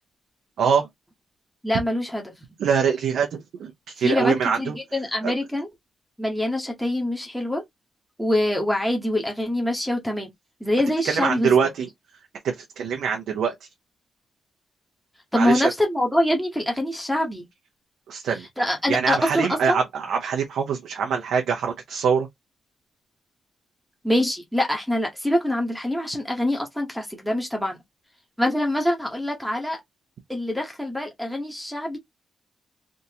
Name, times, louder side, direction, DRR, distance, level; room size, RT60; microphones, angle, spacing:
voice 1, 0.6-0.9 2.6-4.8 5.2-5.3 11.0-11.9 12.4-13.5 15.3-15.7 18.1-18.4 18.9-22.3, right 6 dB, 90° right, 0.8 m, -23 dB
voice 2, 1.6-2.3 4.0-5.7 6.2-7.6 8.2-10.3 10.6-11.5 15.3-17.4 18.6-19.8 24.0-27.8 28.4-29.8 30.3-32.0, left 1 dB, ahead, 1.0 m, -24 dB
3.6 x 2.7 x 2.8 m
wide cardioid pair, 150°, 0 cm